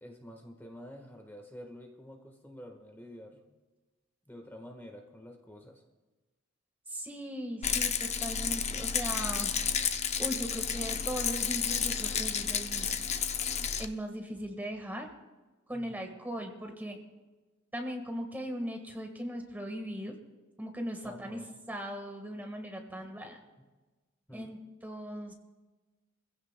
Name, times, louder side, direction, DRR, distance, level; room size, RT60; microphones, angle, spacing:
voice 1, 0.0-3.4 4.3-5.8 15.7-16.0 21.0-21.5 23.0-23.3 24.3-24.5, equal, 10° left, 2 dB, 1.3 m, -49 dB
voice 2, 6.9-9.5 9.8-12.9 13.8-15.1 15.7-17.0 17.7-20.1 20.6-21.4 21.7-23.4 24.3-25.3, equal, 10° right, 3 dB, 1.5 m, -39 dB
Rattle, 7.6-13.9, left 7 dB, 35° left, 0.6 m, -31 dB
24.5 x 16.0 x 2.2 m, 1.2 s
head